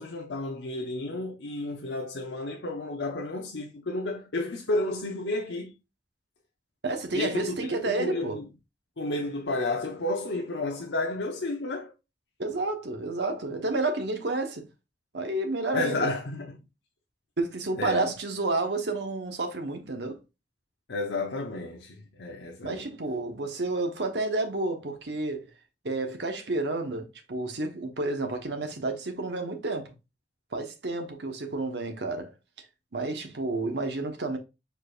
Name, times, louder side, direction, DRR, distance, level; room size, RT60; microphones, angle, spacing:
voice 1, 0.0-5.7 7.1-7.6 7.8-8.4 9.0-11.9 15.7-16.5 17.8-18.1 20.9-22.8, left 2 dB, 80° left, 0.7 m, -31 dB
voice 2, 6.8-8.4 12.4-14.7 15.1-16.1 17.4-20.2 22.6-25.5 25.8-29.9 30.5-32.3 32.6-32.7 32.9-34.4, right 2 dB, 75° right, 1.1 m, -30 dB
4.7 x 4.6 x 2.5 m
head